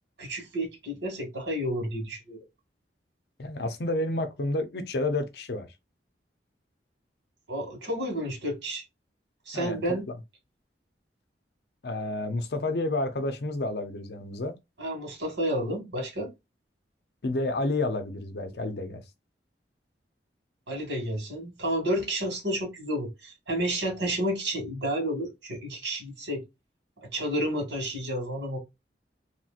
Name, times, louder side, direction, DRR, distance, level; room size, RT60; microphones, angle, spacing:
voice 1, 0.2-2.4 7.5-8.8 9.5-10.0 14.8-16.3 20.7-26.4 27.1-28.6, equal, 90° right, 1.9 m, -31 dB
voice 2, 3.4-5.7 9.5-10.1 11.8-14.6 17.2-19.0, left 2 dB, 60° left, 0.6 m, -30 dB
3.1 x 2.9 x 2.4 m
head